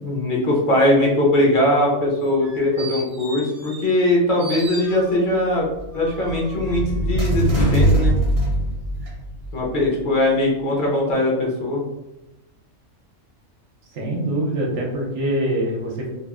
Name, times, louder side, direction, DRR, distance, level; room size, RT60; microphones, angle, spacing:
voice 1, 0.0-5.7 5.9-8.1 9.5-11.8, left 1 dB, 50° left, -3 dB, 0.7 m, -20 dB
sound 1, 2.2-4.1 4.4-5.4 5.9-8.5 9.0-9.1, right 2 dB, 40° right, 0.5 m, -38 dB
sound 2, 5.8-9.6, right 1 dB, 75° left, 0.3 m, -21 dB
voice 2, 13.9-16.1, right 1 dB, 70° right, -1 dB, 0.9 m, -24 dB
2.9 x 2.4 x 2.4 m, 0.95 s
omnidirectional pair, 1.3 m